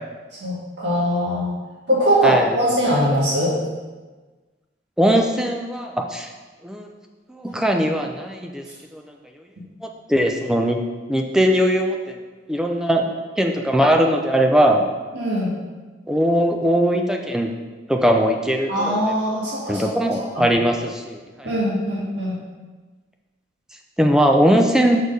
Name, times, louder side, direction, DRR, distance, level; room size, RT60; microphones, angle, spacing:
voice 1, 0.4-1.5 1.9-3.5 15.1-15.5 18.7-19.9 20.2-20.4 21.4-22.3, equal, 65° right, -6 dB, 1.7 m, -21 dB
voice 2, 5.0-6.3 6.6-6.9 7.3-8.6 8.9-9.0 9.8-10.8 11.1-12.2 12.5-14.8 16.1-17.5 17.9-19.0 19.7-21.5 24.0-25.0, equal, 5° right, 2 dB, 0.5 m, -20 dB
6.3 x 4.3 x 5.3 m, 1.3 s
head